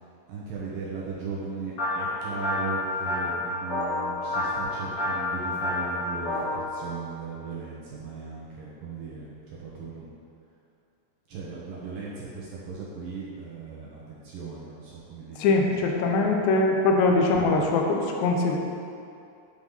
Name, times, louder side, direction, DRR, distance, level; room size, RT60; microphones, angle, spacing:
voice 1, 0.3-10.1 11.3-16.4, right 4 dB, 70° right, -6 dB, 2.3 m, -38 dB
sound 1, 1.8-6.6, left 2 dB, 50° left, 3.5 m, -29 dB
voice 2, 15.4-18.6, left 3 dB, 80° left, 1 dB, 3.0 m, -22 dB
9.7 x 5.1 x 5.6 m, 2.5 s
omnidirectional pair, 5.0 m